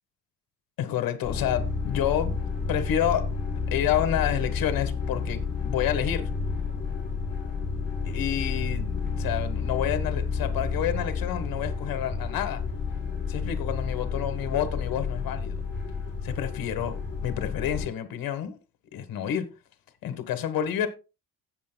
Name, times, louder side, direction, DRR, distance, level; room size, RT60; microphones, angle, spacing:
voice 1, 0.8-2.3 2.7-3.3 3.7-6.3 8.0-12.6 13.3-15.6 16.2-16.9 17.2-18.6 18.9-19.5 20.0-20.9, left 10 dB, 70° left, 1.6 m, -29 dB
sound 1, 1.2-17.9, left 4 dB, 30° left, 4.0 m, -30 dB
17.5 x 6.9 x 2.3 m
cardioid pair, 130°, 36 cm